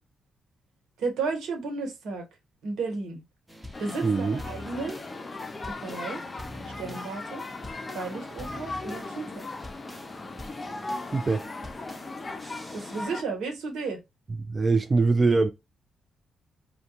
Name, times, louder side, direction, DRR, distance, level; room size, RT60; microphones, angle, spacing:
voice 1, 1.0-2.3 2.6-3.2 3.8-5.0 5.7-6.2 6.8-7.4 7.9-9.4 12.7-14.0, right 4 dB, 80° right, 1.0 m, -33 dB
sound 1, 3.5-13.0, equal, 10° right, 0.7 m, -45 dB
sound 2, 3.7-13.2, left 3 dB, 35° left, 0.5 m, -38 dB
voice 2, 4.0-4.4 11.1-11.5 14.4-15.5, right 3 dB, 35° right, 0.3 m, -23 dB
2.4 x 2.2 x 2.8 m
supercardioid pair, 50°, 0 cm